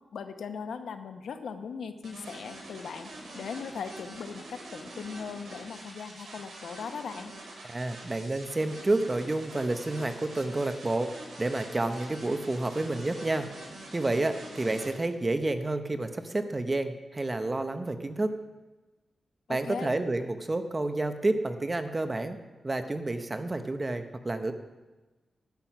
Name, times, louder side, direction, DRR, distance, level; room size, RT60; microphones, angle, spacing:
voice 1, 0.1-7.3 19.5-20.0, left 6 dB, 90° left, 8 dB, 0.9 m, -39 dB
sound 1, 2.0-14.9, right 2 dB, 70° right, 5.1 m, -45 dB
voice 2, 7.7-11.1 11.4-13.5 13.9-18.3 19.5-22.4 22.6-24.5, right 2 dB, 25° right, 8 dB, 0.9 m, -29 dB
11.5 x 9.7 x 5.9 m, 1.2 s
wide cardioid pair, 125°, 0 cm